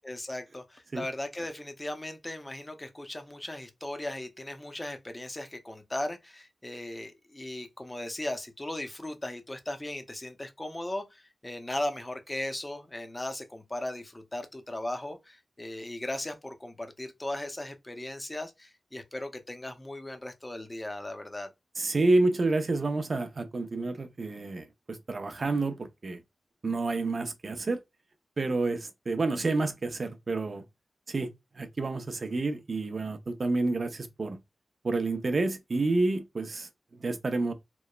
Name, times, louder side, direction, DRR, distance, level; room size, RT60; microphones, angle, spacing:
voice 1, 0.0-21.5, left 1 dB, 20° left, 0.6 m, -37 dB
voice 2, 21.8-26.2 26.6-27.8 28.4-30.6 31.1-31.3 31.5-34.4 34.8-37.5, right 2 dB, 55° right, 0.5 m, -29 dB
3.0 x 2.1 x 2.2 m
cardioid pair, 65°, 0 cm